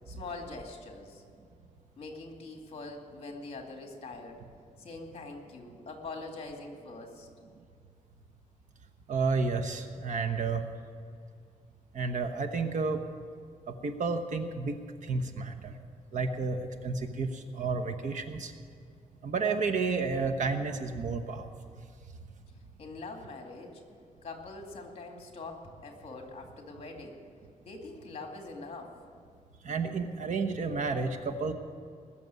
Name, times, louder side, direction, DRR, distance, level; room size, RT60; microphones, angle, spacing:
voice 1, 0.1-1.2 2.0-4.4 4.8-7.3 22.8-23.8 24.2-27.2 27.6-28.9, left 3 dB, 45° left, 3 dB, 2.3 m, -43 dB
voice 2, 9.1-10.6 11.9-13.0 13.7-15.7 16.1-18.5 19.2-21.5 29.6-31.5, right 4 dB, 60° right, 5 dB, 1.1 m, -31 dB
20.0 x 7.0 x 9.4 m, 2.3 s
wide cardioid pair, 155°, 14 cm